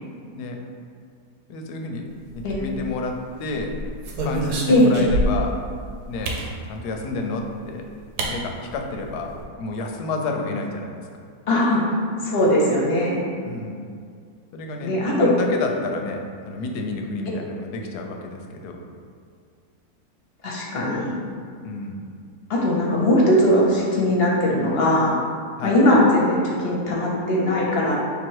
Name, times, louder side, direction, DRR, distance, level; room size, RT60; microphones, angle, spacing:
voice 1, 1.5-2.0 2.3-3.7 4.2-5.6 6.1-6.4 6.7-7.9 8.3-9.3 9.6-11.2 13.4-13.8 14.5-18.8 21.6-22.0 25.6-25.8, left 3 dB, 85° left, 2 dB, 1.1 m, -30 dB
sound 1, 2.3-3.0 3.6-5.6 6.2-6.5 7.6-7.7 8.2-8.3 8.7-8.8 9.0-9.4, right 1 dB, 80° right, 1.2 m, -27 dB
voice 2, 11.5-13.2 14.8-15.3 20.4-21.1 22.5-25.1 25.6-28.0, left 1 dB, 50° left, -4 dB, 0.8 m, -19 dB
3.4 x 3.0 x 4.6 m, 2.2 s
omnidirectional pair, 1.7 m